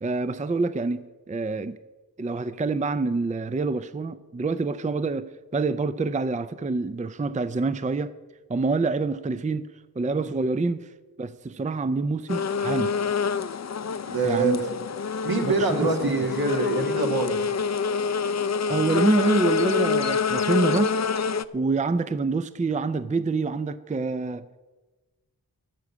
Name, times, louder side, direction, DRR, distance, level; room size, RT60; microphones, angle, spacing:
voice 1, 0.0-1.8 2.2-8.2 8.5-9.7 10.0-10.9 11.2-13.0 14.2-14.6 15.4-16.2 18.7-21.0 21.5-24.5, right 3 dB, 20° right, 14 dB, 0.5 m, -26 dB
sound 1, 12.3-21.4, left 5 dB, 45° left, 0.5 m, -26 dB
voice 2, 14.1-14.7 15.2-17.4, right 3 dB, 70° right, 3 dB, 1.9 m, -25 dB
13.0 x 6.0 x 8.5 m, 1.2 s
wide cardioid pair, 60°, 38 cm